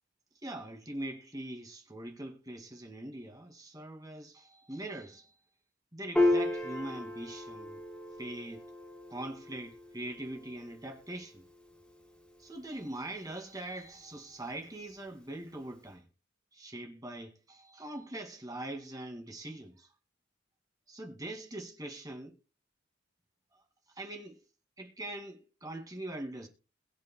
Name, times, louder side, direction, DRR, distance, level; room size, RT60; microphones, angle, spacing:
voice 1, 0.4-5.3 5.9-7.8 8.2-8.7 9.1-11.4 12.4-16.1 16.5-19.9 20.9-22.4 23.5-24.4 24.8-26.5, right 1 dB, 20° right, 2.4 m, -42 dB
Piano, 6.2-12.8, left 2 dB, 5° left, 4.2 m, -34 dB
22.0 x 7.4 x 2.3 m
head